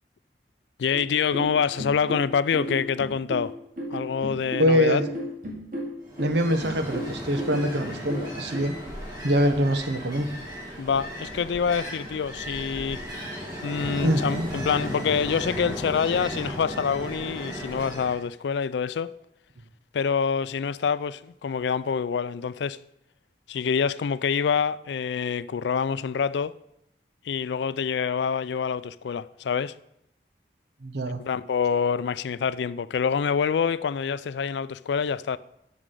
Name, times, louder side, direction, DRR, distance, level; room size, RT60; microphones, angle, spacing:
voice 1, 0.8-3.5 3.9-5.0 10.8-13.0 13.6-19.2 19.9-22.8 23.5-26.6 27.3-29.7 31.2-35.4, left 6 dB, 80° left, 0.4 m, -26 dB
sound 1, 0.9-8.6, equal, 50° right, 2.5 m, -34 dB
voice 2, 4.6-5.0 6.2-8.7 9.2-10.3 14.0-14.5 30.8-31.2, equal, 75° right, 1.0 m, -24 dB
Ocean, 6.0-18.2, equal, 20° right, 2.8 m, -36 dB
7.3 x 6.2 x 6.8 m
head